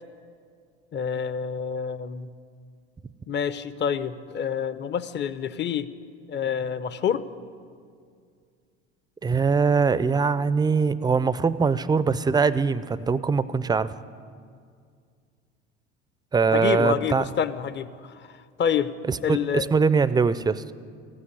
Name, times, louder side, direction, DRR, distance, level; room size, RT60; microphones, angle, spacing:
voice 1, 0.9-2.3 3.3-5.9 6.3-7.2 16.5-18.1 18.6-18.9 19.2-19.7, left 8 dB, 35° left, 14 dB, 0.7 m, -27 dB
voice 2, 9.2-13.9 16.3-17.3 19.1-20.6, right 5 dB, 15° right, 16 dB, 0.4 m, -22 dB
15.5 x 8.8 x 9.7 m, 2.2 s
hypercardioid pair, 80°, 32 cm